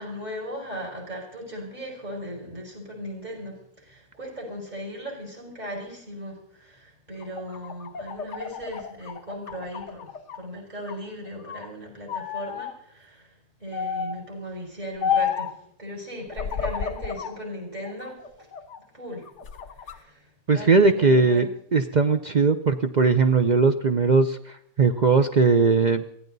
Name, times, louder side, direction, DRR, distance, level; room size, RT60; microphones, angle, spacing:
voice 1, 0.0-18.5 18.9-19.3 19.7-21.5, equal, 25° right, 0 dB, 5.8 m, -37 dB
sound 1, 7.2-10.4 10.8-11.7 12.1-12.7 13.7-14.2 15.0-15.6 16.3-17.4 17.8-18.8 19.3-20.0, left 7 dB, 50° left, 1.2 m, -31 dB
voice 2, 20.5-26.0, right 4 dB, 65° right, 8 dB, 0.4 m, -20 dB
22.5 x 16.0 x 4.0 m, 0.71 s
omnidirectional pair, 1.7 m